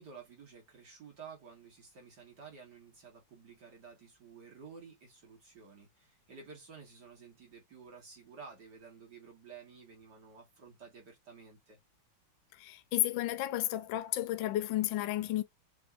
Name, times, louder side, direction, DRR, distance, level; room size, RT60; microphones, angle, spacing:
voice 1, 0.0-11.8, right 5 dB, 60° right, 2.5 m, -52 dB
voice 2, 12.5-15.4, left 14 dB, 75° left, 1.3 m, -32 dB
6.7 x 2.9 x 2.5 m
omnidirectional pair, 2.2 m